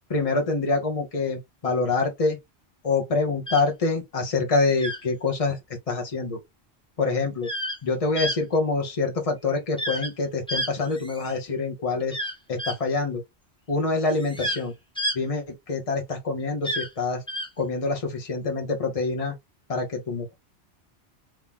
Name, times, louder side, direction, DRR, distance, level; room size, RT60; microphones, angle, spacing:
voice 1, 0.1-2.4 2.8-5.6 5.9-6.4 7.0-7.5 7.8-12.2 12.5-13.2 13.7-14.7 15.1-17.2 17.6-19.3 19.7-20.3, left 3 dB, 35° left, 1.1 m, -26 dB
sound 1, 3.5-3.6 4.8-5.0 7.4-7.8 8.2-8.4 9.8-10.1 10.5-11.4 12.1-12.8 14.1-14.6 15.0-15.2 16.6-16.9 17.3-17.5, equal, 5° left, 0.7 m, -30 dB
3.1 x 2.8 x 3.5 m
omnidirectional pair, 1.1 m